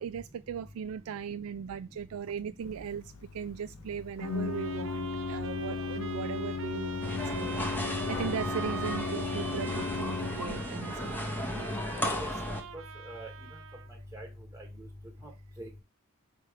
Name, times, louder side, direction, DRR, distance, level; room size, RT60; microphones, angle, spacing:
voice 1, 0.0-3.0 3.3-11.7, right 7 dB, 80° right, 0.3 m, -38 dB
Organ, 2.6-12.7, left 4 dB, 70° left, 0.4 m, -37 dB
Trumpet, 4.2-13.9, right 6 dB, 60° right, 0.7 m, -44 dB
sound 1, 7.0-12.6, left 1 dB, 10° left, 0.8 m, -35 dB
voice 2, 12.7-13.3 13.9-14.9 15.2-15.3 15.6-15.8, right 1 dB, 10° right, 1.1 m, -44 dB
5.6 x 3.5 x 4.8 m
head